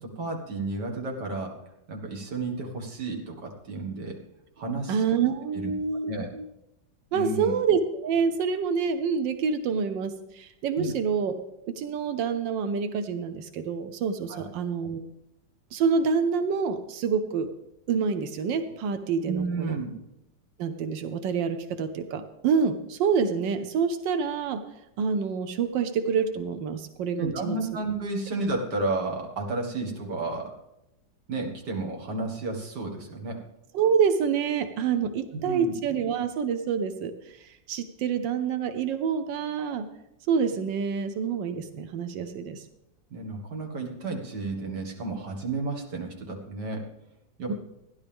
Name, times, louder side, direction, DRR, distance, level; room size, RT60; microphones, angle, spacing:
voice 1, 0.0-1.5 1.9-4.2 4.6-5.0 5.5-5.7 6.1-6.3 7.1-7.5 10.8-10.9 14.3-14.5 19.3-19.9 27.1-30.5 31.3-33.4 35.1-35.7 43.1-46.9 47.4-47.5, right 3 dB, 65° right, 1 dB, 2.5 m, -32 dB
voice 2, 4.9-6.5 7.1-11.4 11.7-15.1 15.7-17.5 17.9-19.8 20.6-24.6 25.0-27.6 33.7-39.9 40.3-42.6 47.5-47.6, right 6 dB, 85° right, 9 dB, 1.5 m, -27 dB
15.5 x 11.0 x 3.5 m, 0.87 s
omnidirectional pair, 1.9 m